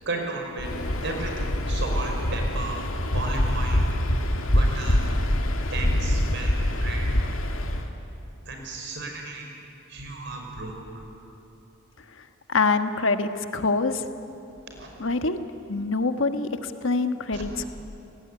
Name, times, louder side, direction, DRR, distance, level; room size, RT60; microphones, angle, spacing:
voice 1, 0.1-0.8 1.0-2.8 3.1-3.8 4.1-4.2 4.5-5.0 5.7-7.1 8.5-9.5 9.9-11.0 14.7-14.9 17.3-17.4, right 2 dB, 60° right, 2 dB, 5.4 m, -34 dB
Waves surf, 0.6-7.9, left 1 dB, 85° left, 2.1 m, -25 dB
voice 2, 12.5-14.0 15.0-15.4 15.7-17.7, left 3 dB, 70° left, 8 dB, 1.4 m, -25 dB
29.0 x 18.5 x 10.0 m, 2.9 s
head